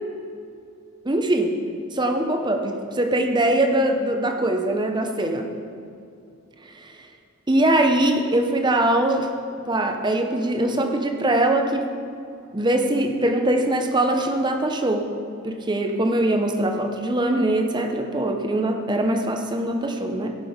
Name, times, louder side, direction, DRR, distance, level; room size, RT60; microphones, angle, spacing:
voice 1, 1.0-1.6 1.9-5.5 6.8-6.9 7.5-9.3 9.7-11.9 12.5-15.1 15.4-20.4, right 1 dB, 20° right, 5 dB, 0.7 m, -22 dB
15.0 x 6.1 x 5.1 m, 2.5 s
head